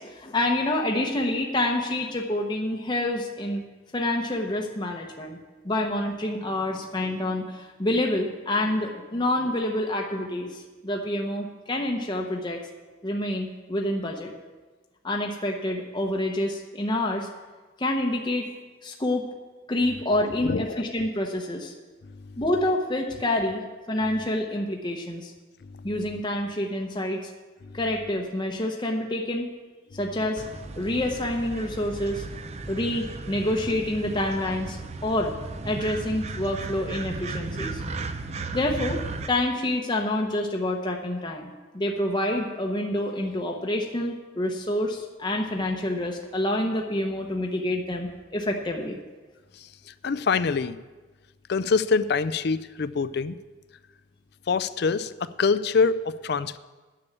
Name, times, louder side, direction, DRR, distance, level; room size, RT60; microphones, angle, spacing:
voice 1, 0.0-3.6 3.9-5.4 5.6-12.6 13.0-14.3 15.0-17.3 17.8-18.5 18.8-19.2 19.7-21.7 22.4-23.6 23.9-25.3 25.8-27.3 27.7-29.5 29.9-30.4 30.8-32.2 32.7-35.3 35.6-37.8 38.5-39.0 39.3-49.0, left 1 dB, 25° left, 1 dB, 0.8 m, -27 dB
voice 2, 20.4-21.1 22.0-22.1 25.7-25.9 27.6-27.8 49.6-49.7 50.0-50.8 51.5-53.4 54.5-56.6, left 5 dB, 55° left, 14 dB, 0.4 m, -25 dB
sound 1, 30.4-39.3, right 3 dB, 35° right, 0.5 m, -35 dB
9.9 x 6.9 x 8.3 m, 1.3 s
head